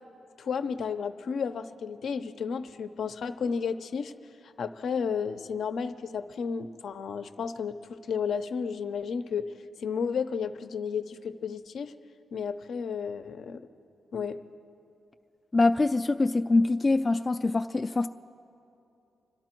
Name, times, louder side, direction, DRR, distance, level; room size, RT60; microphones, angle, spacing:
voice 1, 0.4-4.1 4.4-9.5 9.8-11.9 12.3-13.6 14.1-14.4, left 6 dB, 75° left, 8 dB, 0.6 m, -32 dB
voice 2, 15.5-18.1, left 3 dB, 25° left, 7 dB, 0.3 m, -24 dB
26.0 x 12.0 x 4.5 m, 2.7 s
cardioid pair, 105°, 0 cm